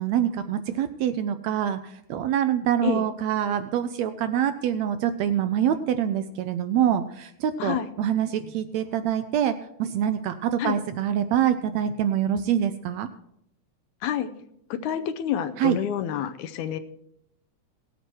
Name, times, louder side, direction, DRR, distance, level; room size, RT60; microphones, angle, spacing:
voice 1, 0.0-13.1 15.6-15.8, right 10 dB, 75° right, 10 dB, 1.7 m, -25 dB
voice 2, 14.7-16.8, left 9 dB, 80° left, 9 dB, 2.1 m, -28 dB
17.5 x 8.2 x 4.5 m, 0.75 s
omnidirectional pair, 3.6 m